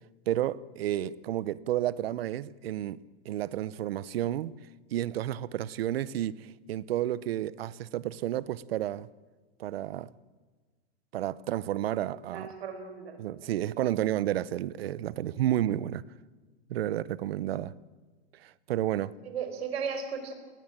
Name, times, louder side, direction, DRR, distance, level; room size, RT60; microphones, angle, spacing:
voice 1, 0.3-3.0 3.2-4.5 4.9-9.1 9.6-10.1 11.1-12.5 13.2-16.0 16.7-17.7 18.4-19.1, right 12 dB, 70° right, 0.9 m, -31 dB
voice 2, 12.1-13.2 19.2-20.3, right 6 dB, 85° right, 4.8 m, -36 dB
20.0 x 18.5 x 8.9 m
supercardioid pair, 170°, 31 cm